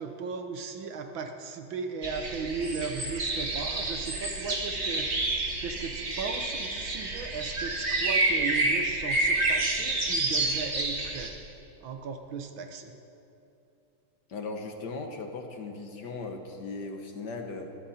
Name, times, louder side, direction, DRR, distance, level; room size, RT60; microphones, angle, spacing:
voice 1, 0.0-11.5 11.8-12.9, right 5 dB, 70° right, 6 dB, 1.7 m, -36 dB
sound 1, 2.0-11.3, right 2 dB, 35° right, 1.8 m, -29 dB
voice 2, 14.3-17.8, left 3 dB, 55° left, 4 dB, 1.5 m, -38 dB
21.0 x 13.0 x 4.3 m, 2.9 s
omnidirectional pair, 2.4 m